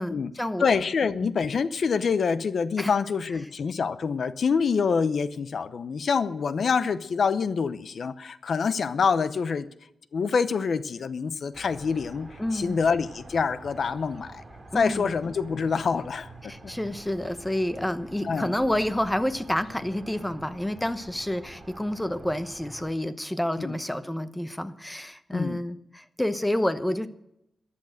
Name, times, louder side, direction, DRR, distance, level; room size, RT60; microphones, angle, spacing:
voice 1, 0.0-0.7 1.2-1.3 2.8-2.9 12.4-12.8 14.7-15.1 16.5-27.1, left 1 dB, 5° left, 11 dB, 0.9 m, -29 dB
voice 2, 0.6-9.7 10.1-14.4 14.7-16.3 16.6-16.7 18.2-18.5 23.6-23.8 25.3-25.6, left 5 dB, 60° left, 14 dB, 0.7 m, -26 dB
sound 1, 11.5-22.9, right 2 dB, 20° right, 2.6 m, -47 dB
14.5 x 11.5 x 6.4 m, 0.82 s
wide cardioid pair, 125°, 0 cm